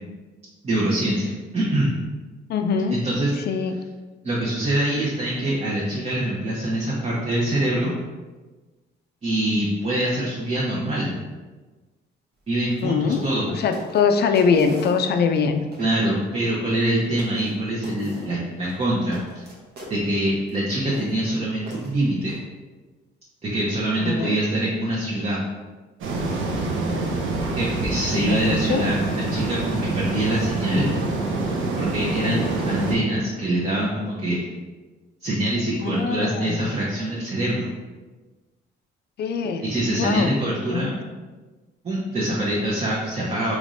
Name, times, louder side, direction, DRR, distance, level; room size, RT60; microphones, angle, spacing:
voice 1, 0.6-2.0 2.9-3.3 4.2-7.9 9.2-11.1 12.5-13.5 15.8-19.5 19.9-22.4 23.4-25.4 27.4-30.9 31.8-34.3 35.2-37.7 39.6-41.0 41.8-43.6, right 1 dB, 30° right, -6 dB, 0.8 m, -24 dB
voice 2, 2.5-3.0 3.5-3.7 12.8-15.7 24.0-24.4 28.1-28.9 35.8-36.7 39.2-39.6 39.9-40.3 40.7-40.9, left 5 dB, 55° left, 6 dB, 0.4 m, -23 dB
sound 1, 12.7-12.8 13.1-13.4 13.7-15.4 15.7-15.9 16.7-16.8 17.2-17.5 17.8-18.3 18.6-20.0 20.5-20.6 20.9-21.2 21.7-22.4, equal, 55° right, 1.1 m, -42 dB
sound 2, 26.0-33.0, right 3 dB, 80° right, 0.6 m, -26 dB
3.4 x 3.1 x 2.5 m, 1.3 s
cardioid pair, 90°, 20 cm